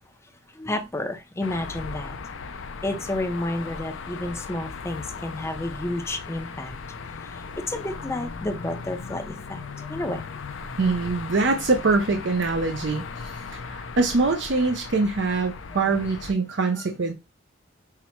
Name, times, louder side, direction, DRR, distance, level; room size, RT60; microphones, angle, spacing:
voice 1, 0.5-2.2 2.8-6.7 7.3-10.3 16.8-16.9, left 1 dB, 15° left, 0.5 m, -31 dB
sound 1, 1.4-16.3, left 4 dB, 75° left, 0.5 m, -37 dB
voice 2, 10.8-17.1, right 3 dB, 65° right, 0.5 m, -24 dB
5.7 x 2.0 x 4.4 m
head